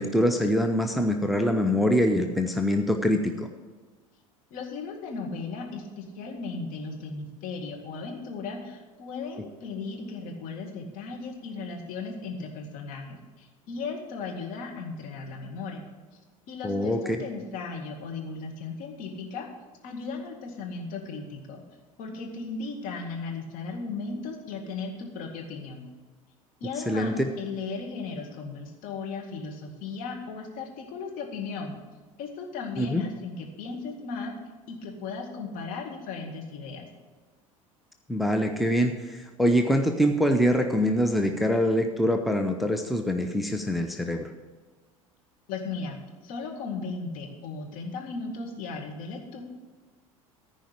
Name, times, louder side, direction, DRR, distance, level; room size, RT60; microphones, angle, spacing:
voice 1, 0.0-3.5 16.6-17.2 26.9-27.1 32.8-33.0 38.1-44.3, equal, ahead, 4 dB, 0.7 m, -24 dB
voice 2, 4.5-15.8 16.5-19.5 19.8-21.6 22.0-25.9 26.6-31.8 32.2-34.3 34.7-36.9 45.5-49.4, left 4 dB, 50° left, 1 dB, 2.1 m, -36 dB
14.0 x 5.0 x 8.4 m, 1.3 s
figure-of-eight pair, 65°, 18 cm